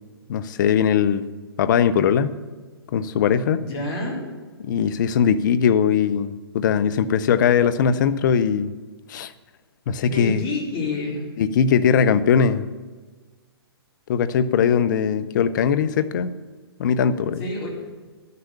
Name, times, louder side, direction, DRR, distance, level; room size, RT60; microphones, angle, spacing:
voice 1, 0.3-1.3 1.6-2.3 2.9-3.6 4.6-8.7 9.1-9.3 9.9-10.4 11.4-12.7 14.1-16.3 16.8-17.4, left 7 dB, 50° left, 14 dB, 0.7 m, -20 dB
voice 2, 3.6-4.2 7.9-8.0 10.0-11.2 17.4-17.7, left 2 dB, 30° left, -3 dB, 4.1 m, -28 dB
12.5 x 6.8 x 8.4 m, 1.4 s
hypercardioid pair, 130°, 13 cm